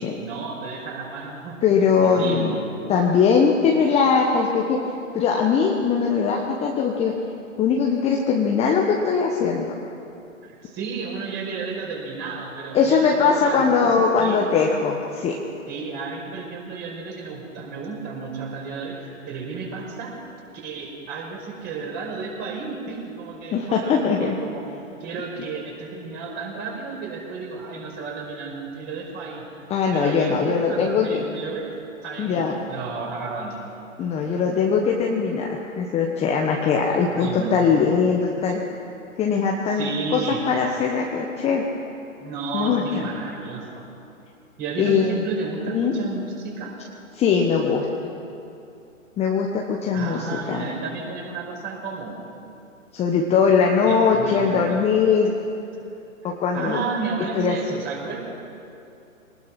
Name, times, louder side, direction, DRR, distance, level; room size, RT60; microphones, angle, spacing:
voice 1, 0.0-1.6 2.0-2.7 10.4-14.5 15.7-20.2 20.5-24.7 25.0-29.5 29.9-31.7 32.0-33.7 36.9-37.8 39.7-40.5 42.2-43.9 44.6-46.7 49.9-52.2 53.8-54.9 56.5-58.3, right 4 dB, 25° right, 0 dB, 5.1 m, -32 dB
voice 2, 1.6-2.6 2.9-4.8 5.1-7.2 7.6-9.7 12.7-15.4 23.5-24.3 29.7-31.2 32.2-32.6 34.0-38.6 39.2-41.6 42.5-42.8 44.8-45.2 45.7-45.9 47.1-47.9 49.2-50.7 52.9-55.3 56.2-56.8 57.3-57.6, left 6 dB, 15° left, 0 dB, 1.2 m, -21 dB
24.0 x 19.0 x 5.9 m, 2.7 s
hypercardioid pair, 130°, 41 cm